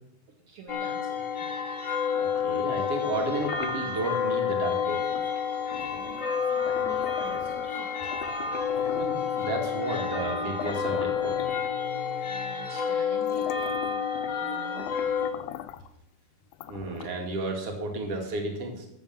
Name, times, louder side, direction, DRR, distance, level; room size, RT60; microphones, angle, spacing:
voice 1, 0.5-1.5 1.8-2.1 5.6-8.1 12.2-14.0 14.4-15.0, right 4 dB, 60° right, -2 dB, 3.0 m, -46 dB
sound 1, 0.7-15.3, left 7 dB, 65° left, 0.7 m, -29 dB
sound 2, 2.2-4.2 5.1-5.3 5.7-7.8 8.1-9.8 10.3-10.4 10.6-12.1 12.7-12.8 13.2-14.5 14.8-15.9 16.5-17.3, left 12 dB, 80° left, 2.0 m, -42 dB
voice 2, 2.2-5.1 8.9-11.4 16.7-18.9, right 2 dB, 45° right, 2 dB, 3.1 m, -32 dB
15.5 x 7.2 x 7.4 m, 0.83 s
omnidirectional pair, 3.8 m